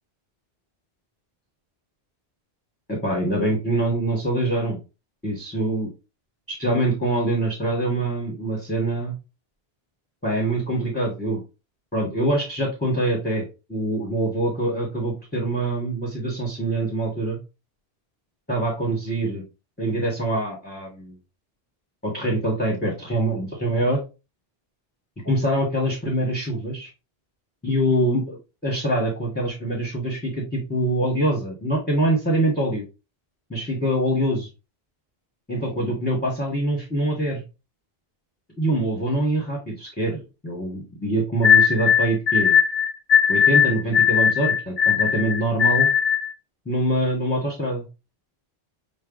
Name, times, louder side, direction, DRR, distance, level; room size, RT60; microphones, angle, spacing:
voice 1, 2.9-4.8 5.2-5.9 6.5-9.2 10.2-11.4 11.9-17.4 18.5-19.4 19.8-21.2 22.0-24.0 25.2-26.9 27.6-32.8 33.5-34.5 35.5-37.4 38.6-42.6 43.3-45.9 46.6-47.9, right 1 dB, 10° left, -3 dB, 1.2 m, -24 dB
sound 1, 41.4-46.3, left 8 dB, 75° left, 0.9 m, -18 dB
6.4 x 2.1 x 3.8 m, 0.29 s
omnidirectional pair, 1.0 m